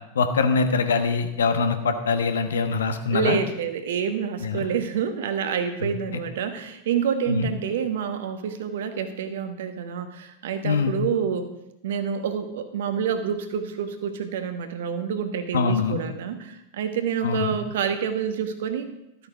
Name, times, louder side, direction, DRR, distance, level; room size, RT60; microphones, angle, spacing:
voice 1, 0.1-3.4 4.4-4.7 5.8-5.9 7.3-7.5 10.6-10.9 15.5-16.0 17.2-17.5, left 4 dB, 65° left, 7 dB, 1.1 m, -23 dB
voice 2, 3.1-11.5 11.8-18.9, right 7 dB, 60° right, 8 dB, 1.3 m, -28 dB
13.0 x 8.5 x 5.0 m, 0.90 s
figure-of-eight pair, 90°, 0 cm